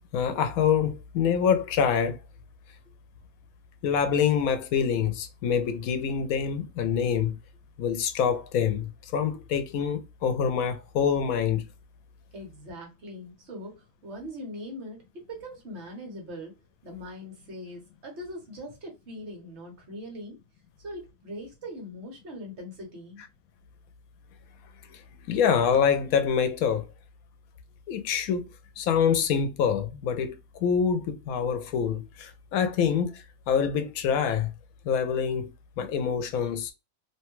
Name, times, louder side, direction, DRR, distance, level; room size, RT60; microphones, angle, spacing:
voice 1, 0.1-2.2 3.8-7.4 7.8-11.7 24.9-25.0 25.3-26.9 27.9-28.4 28.8-30.4 30.6-34.5 34.8-35.5 35.8-36.7, left 7 dB, 85° left, 1.0 m, -26 dB
voice 2, 12.3-16.5 16.8-20.4 20.8-23.2, equal, 55° right, 1.3 m, -41 dB
2.9 x 2.2 x 2.9 m
omnidirectional pair, 1.4 m